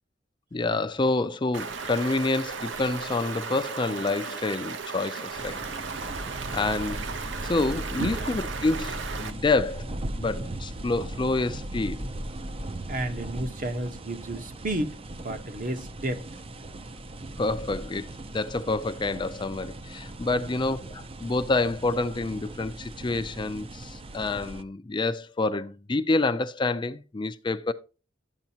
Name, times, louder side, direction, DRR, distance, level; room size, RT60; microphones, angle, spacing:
voice 1, 0.5-5.6 6.5-7.1 7.4-9.9 10.2-12.0 17.4-27.7, left 3 dB, 25° left, 0.4 m, -28 dB
Stream, 1.5-9.3, right 5 dB, 75° right, 0.9 m, -36 dB
sound 1, 5.4-24.6, right 1 dB, 30° right, 0.6 m, -38 dB
voice 2, 12.9-16.3, right 1 dB, 45° right, 1.1 m, -32 dB
12.0 x 8.0 x 2.8 m
head